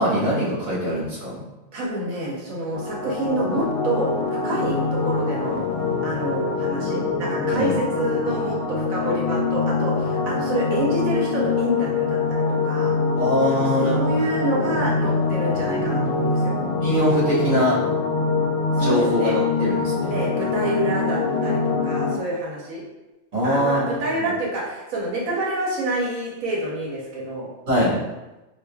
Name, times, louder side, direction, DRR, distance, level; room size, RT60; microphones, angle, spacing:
voice 1, 0.0-1.4 7.5-7.7 13.2-14.0 16.8-17.8 18.8-20.2 23.3-24.3 27.7-28.0, equal, 50° right, -9 dB, 1.8 m, -22 dB
voice 2, 1.7-4.1 4.4-5.6 6.0-12.9 13.5-16.6 18.8-19.4 20.1-22.8 23.4-27.5, right 1 dB, 80° right, -3 dB, 1.2 m, -27 dB
sound 1, 2.7-22.2, left 4 dB, 75° left, 0.9 m, -24 dB
4.8 x 2.6 x 2.3 m, 1.0 s
omnidirectional pair, 1.4 m